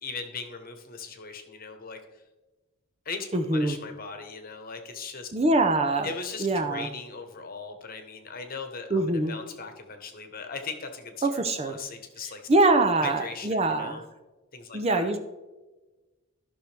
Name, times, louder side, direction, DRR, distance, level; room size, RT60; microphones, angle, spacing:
voice 1, 0.0-2.2 3.0-5.3 6.0-12.5 13.0-14.0 14.5-15.1, left 4 dB, 40° left, 6 dB, 1.1 m, -39 dB
voice 2, 3.3-3.8 5.3-6.1 6.4-6.9 8.9-9.3 11.2-11.8 12.5-14.0 14.7-15.2, right 2 dB, 25° right, 7 dB, 0.6 m, -24 dB
14.0 x 6.2 x 3.4 m, 1.1 s
head